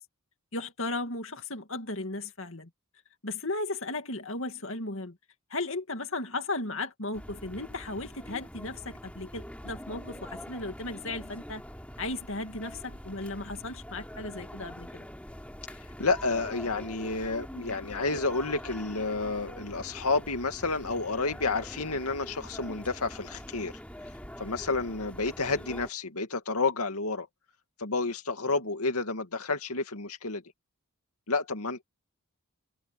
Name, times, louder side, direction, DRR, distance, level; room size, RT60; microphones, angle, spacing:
voice 1, 0.5-2.7 3.2-5.2 5.5-11.6 12.0-15.1, left 2 dB, 60° left, 2.4 m, -35 dB
sound 1, 7.1-25.9, equal, 5° left, 3.7 m, -44 dB
voice 2, 16.0-23.7 24.4-27.3 27.8-30.4 31.3-31.8, left 3 dB, 85° left, 2.4 m, -30 dB
head